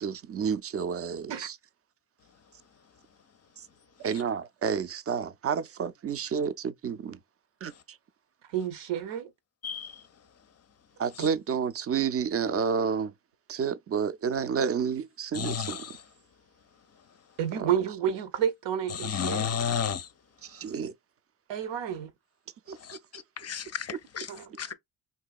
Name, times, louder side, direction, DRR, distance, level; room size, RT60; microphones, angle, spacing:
voice 1, 0.0-1.6 3.6-3.7 4.0-7.2 7.6-8.0 11.0-13.1 13.5-15.8 17.6-17.7 20.4-20.9 22.7-22.8 23.9-24.0, right 6 dB, 35° right, 0.5 m, -30 dB
voice 2, 8.5-9.3 11.2-11.3 17.4-19.7 21.5-22.1 24.3-24.7, right 9 dB, 75° right, 0.8 m, -31 dB
voice 3, 9.6-10.0 15.3-15.9 19.0-20.1 22.9-24.3 24.6-24.7, left 7 dB, 35° left, 0.5 m, -32 dB
3.9 x 2.7 x 2.3 m
supercardioid pair, 70°, 44 cm